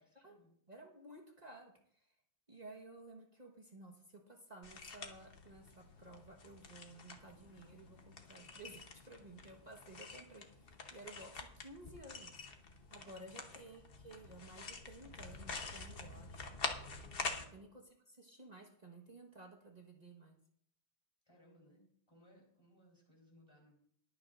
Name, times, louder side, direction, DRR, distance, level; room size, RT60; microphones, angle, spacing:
voice 1, 0.0-0.5 12.9-13.5 17.1-17.5 21.3-23.8, equal, 25° left, -2 dB, 4.0 m, -66 dB
voice 2, 0.7-2.1 2.5-12.4 12.9-16.5 17.5-20.4, right 2 dB, 40° right, 0 dB, 1.5 m, -55 dB
sound 1, 4.6-17.5, left 4 dB, 60° left, 1.3 m, -47 dB
21.0 x 8.8 x 2.5 m, 0.64 s
omnidirectional pair, 1.1 m